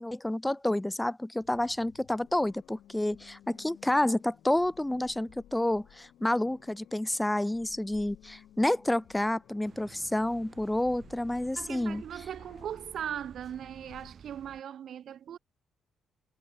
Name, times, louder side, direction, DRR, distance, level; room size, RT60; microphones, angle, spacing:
voice 1, 0.0-12.0, left 1 dB, 10° left, 0.4 m, -29 dB
sound 1, 1.4-14.1, left 11 dB, 75° left, 3.8 m, -57 dB
sound 2, 9.6-14.6, right 6 dB, 45° right, 5.2 m, -53 dB
voice 2, 11.6-15.4, right 9 dB, 65° right, 0.3 m, -39 dB
cardioid pair, 90°, 0 cm